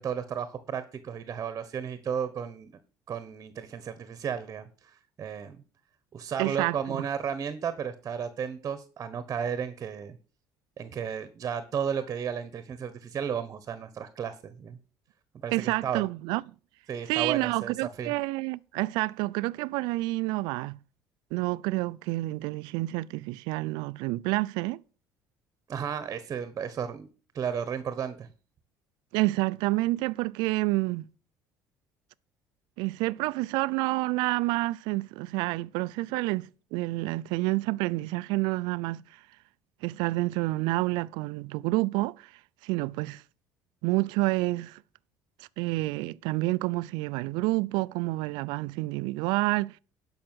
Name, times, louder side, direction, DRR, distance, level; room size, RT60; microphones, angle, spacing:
voice 1, 0.0-2.7 3.1-5.6 6.1-10.2 10.8-14.8 15.4-16.0 16.9-17.7 18.0-18.1 25.7-27.1 27.3-28.3, right 7 dB, 40° right, 1.2 m, -33 dB
voice 2, 6.4-7.1 15.5-16.5 17.1-20.8 21.3-24.8 29.1-31.1 32.8-39.0 39.8-42.3 42.6-43.2 43.8-44.8 45.4-49.8, right 21 dB, 85° right, 0.4 m, -29 dB
12.0 x 5.7 x 7.7 m
cardioid pair, 100°, 7 cm